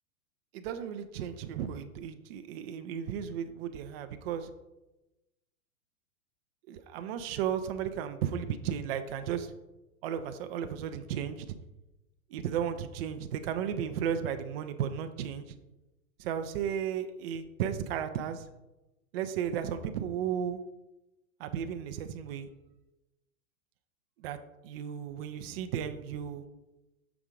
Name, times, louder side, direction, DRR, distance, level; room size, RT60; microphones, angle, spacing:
voice 1, 0.5-4.5 6.7-9.5 10.0-11.5 12.3-15.5 16.2-18.5 19.1-20.6 21.4-22.5 24.2-24.4 24.6-26.4, right 8 dB, 45° right, 8 dB, 0.5 m, -34 dB
5.9 x 3.6 x 5.0 m, 1.0 s
hypercardioid pair, 110°, 43 cm